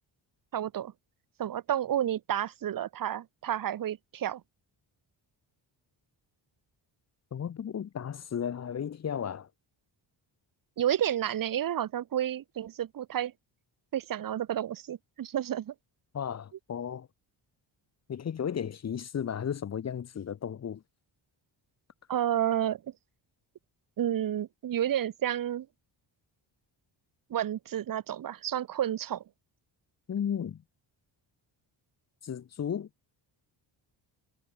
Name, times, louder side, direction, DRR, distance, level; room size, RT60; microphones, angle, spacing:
voice 1, 0.5-0.9 1.4-4.4 10.8-13.3 13.9-15.7 22.1-22.8 24.0-25.7 27.3-29.2, right 11 dB, 45° right, 0.7 m, -30 dB
voice 2, 7.3-9.5 16.1-17.1 18.1-20.8 30.1-30.6 32.2-32.9, left 8 dB, 35° left, 0.6 m, -34 dB
cardioid pair, 115°, 47 cm